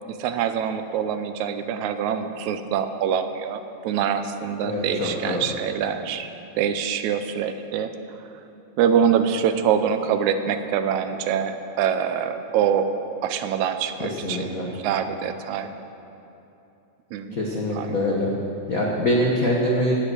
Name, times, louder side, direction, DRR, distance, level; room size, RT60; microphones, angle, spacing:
voice 1, 0.1-6.3 6.6-7.9 8.8-12.9 13.2-14.5 14.8-15.7 17.1-17.5 17.7-18.1, right 8 dB, 80° right, 9 dB, 2.0 m, -25 dB
voice 2, 4.6-5.4 14.0-14.7 17.3-18.3 18.7-19.9, left 1 dB, 70° left, -2 dB, 0.8 m, -24 dB
17.0 x 7.6 x 6.3 m, 2.9 s
omnidirectional pair, 3.4 m